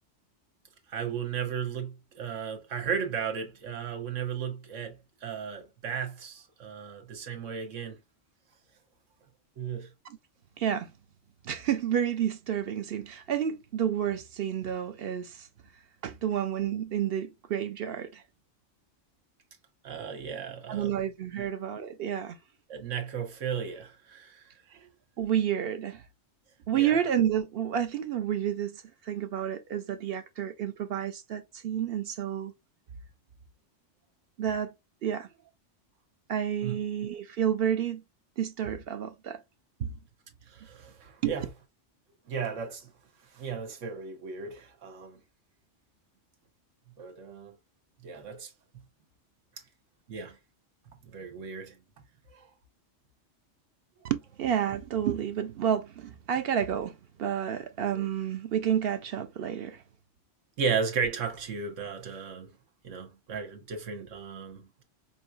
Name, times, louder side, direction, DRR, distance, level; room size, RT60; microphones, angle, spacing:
voice 1, 0.9-8.0 9.6-9.9 19.8-21.0 21.4-21.5 22.7-24.5 26.7-26.9 36.6-36.8 40.5-41.5 42.3-42.9 43.3-45.2 47.0-47.5 48.0-48.5 50.1-50.4 51.1-51.8 52.3-52.5 60.6-62.6 62.8-64.8, right 6 dB, 90° right, 1.3 m, -35 dB
voice 2, 10.6-10.9 11.4-15.5 16.0-18.2 20.7-22.4 25.2-26.0 26.7-32.5 34.4-34.7 35.0-35.3 36.3-38.0 38.4-39.4 39.8-40.0 41.2-41.4 54.0-59.8, right 9 dB, 60° right, 0.7 m, -30 dB
5.4 x 2.7 x 2.2 m
omnidirectional pair, 1.2 m